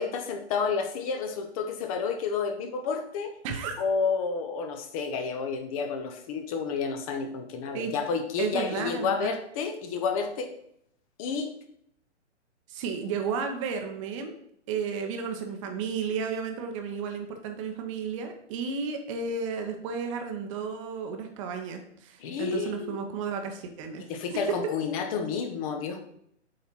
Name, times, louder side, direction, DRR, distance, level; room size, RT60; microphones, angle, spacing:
voice 1, 0.0-3.3 3.8-10.5 11.2-11.5 22.2-23.0 24.1-26.0, left 5 dB, 30° left, 6 dB, 0.9 m, -30 dB
voice 2, 3.4-3.8 7.7-7.9 8.4-9.3 12.7-14.3 14.7-24.0 24.3-24.4, right 5 dB, 25° right, 5 dB, 0.8 m, -33 dB
7.8 x 4.2 x 4.6 m, 0.72 s
figure-of-eight pair, 125°, 36 cm